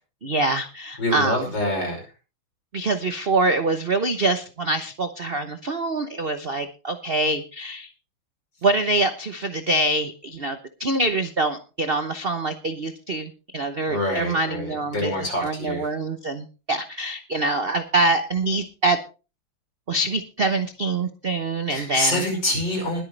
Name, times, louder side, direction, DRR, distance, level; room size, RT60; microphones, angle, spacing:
voice 1, 0.2-1.5 2.7-7.9 8.6-19.0 19.9-22.2, right 2 dB, 50° right, 9 dB, 0.7 m, -25 dB
voice 2, 1.0-2.0 13.9-15.9 21.7-23.0, left 1 dB, 55° left, 2 dB, 6.3 m, -26 dB
21.0 x 9.0 x 3.3 m, 0.33 s
omnidirectional pair, 2.3 m